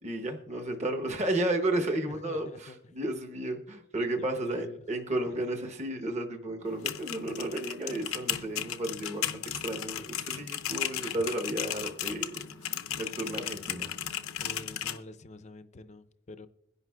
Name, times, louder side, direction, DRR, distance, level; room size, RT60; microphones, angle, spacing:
voice 1, 0.0-13.9, right 1 dB, 30° right, 3 dB, 0.9 m, -33 dB
voice 2, 2.1-2.9 4.2-4.8 5.3-5.4 14.4-16.5, left 2 dB, 35° left, 11 dB, 0.5 m, -46 dB
sound 1, 6.7-15.0, left 10 dB, 85° left, 0.7 m, -35 dB
22.0 x 10.5 x 2.3 m, 0.94 s
head